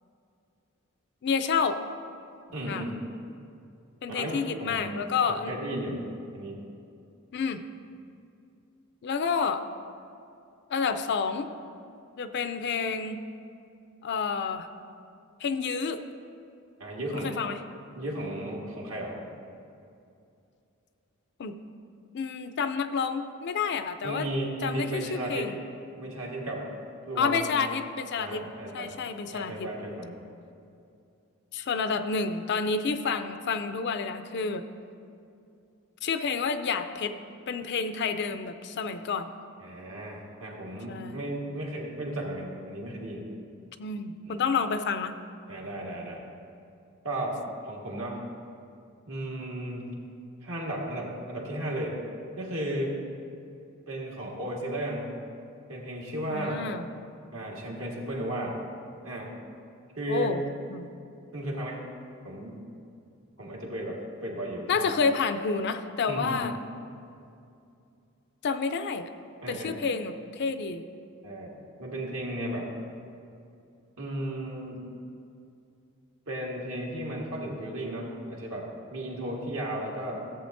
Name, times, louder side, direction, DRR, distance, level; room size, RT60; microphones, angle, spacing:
voice 1, 1.2-1.8 2.7-2.9 4.0-5.5 7.3-7.6 9.0-9.6 10.7-11.5 12.2-13.2 14.0-14.7 15.4-16.0 17.1-17.6 21.4-21.5 22.1-24.3 24.6-25.6 27.2-28.4 28.7-29.7 31.5-34.7 36.0-37.1 37.5-39.3 40.9-41.2 43.8-45.2 56.3-56.9 60.1-60.4 60.7-60.9 64.7-66.6 68.4-69.1 69.5-70.9, left 5 dB, 50° left, 9 dB, 0.4 m, -29 dB
voice 2, 2.5-3.0 4.1-4.9 5.3-6.0 6.3-6.6 16.8-17.4 17.9-19.2 24.0-25.5 26.0-26.7 27.1-27.5 28.2-28.9 29.3-30.2 39.6-43.3 44.3-44.4 45.5-46.2 47.0-47.4 47.6-48.2 49.1-49.9 50.4-52.0 52.4-53.0 53.9-55.1 55.7-56.7 57.3-58.6 59.0-59.3 59.9-60.4 61.3-61.8 62.2-62.6 63.4-64.9 66.1-66.5 69.4-69.8 71.2-72.7 74.0-74.8 76.3-80.2, right 1 dB, 70° right, -2 dB, 1.6 m, -34 dB
15.0 x 7.7 x 2.6 m, 2.5 s
head